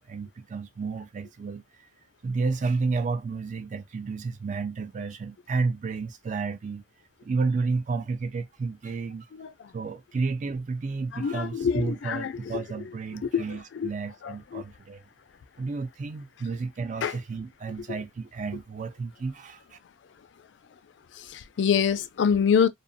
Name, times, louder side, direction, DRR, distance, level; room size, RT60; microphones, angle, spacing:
voice 1, 0.0-1.9 2.2-6.8 7.2-9.3 9.7-15.0 15.6-19.8, right 4 dB, 45° right, 0.4 m, -31 dB
voice 2, 11.1-12.6 13.2-13.4 13.7-13.9 14.2-14.6 17.0-17.1 21.3-22.7, left 7 dB, 70° left, 0.3 m, -25 dB
2.5 x 2.0 x 2.5 m
head